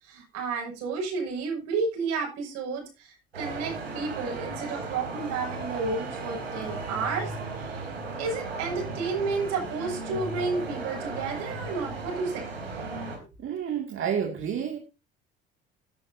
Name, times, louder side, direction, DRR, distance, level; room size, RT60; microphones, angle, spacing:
voice 1, 0.0-7.9 8.2-12.4, right 4 dB, 60° right, 2 dB, 6.7 m, -31 dB
sound 1, 3.3-13.2, right 3 dB, 85° right, 3.7 m, -36 dB
voice 2, 13.4-14.8, right 8 dB, 45° right, 3 dB, 2.4 m, -29 dB
17.0 x 11.0 x 2.8 m, 0.29 s
figure-of-eight pair, 55°, 30 cm